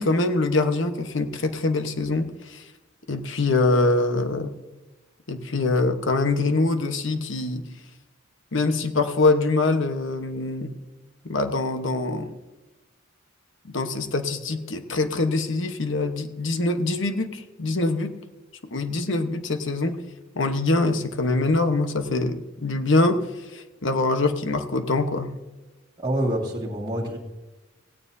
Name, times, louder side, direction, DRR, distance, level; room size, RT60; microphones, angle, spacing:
voice 1, 0.0-2.6 3.1-4.5 5.3-7.6 8.5-10.7 11.2-12.4 13.7-18.2 18.7-20.0 20.3-23.2 23.5-25.3, left 2 dB, 65° left, 8 dB, 1.2 m, -24 dB
voice 2, 26.0-27.2, right 1 dB, 20° right, -6 dB, 2.1 m, -26 dB
17.5 x 17.0 x 2.7 m, 1.1 s
head